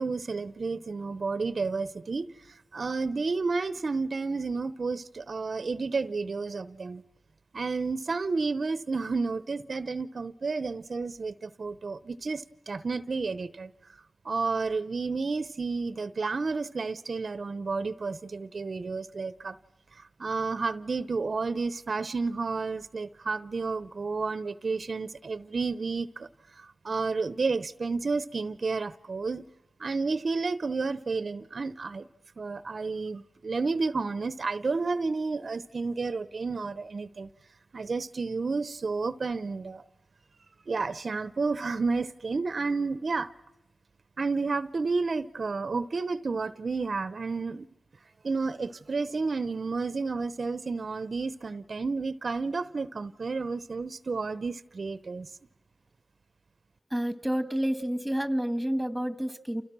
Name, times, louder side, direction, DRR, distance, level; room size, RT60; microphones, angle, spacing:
voice 1, 0.0-7.0 7.5-13.7 14.2-19.6 19.9-26.3 26.6-29.4 29.8-32.1 32.4-37.3 37.7-39.8 40.7-43.3 44.2-47.7 48.2-55.3, right 4 dB, 55° right, 0.9 m, -31 dB
voice 2, 56.9-59.6, equal, 5° right, 1.9 m, -29 dB
29.5 x 29.5 x 6.2 m
wide cardioid pair, 70°, 0 cm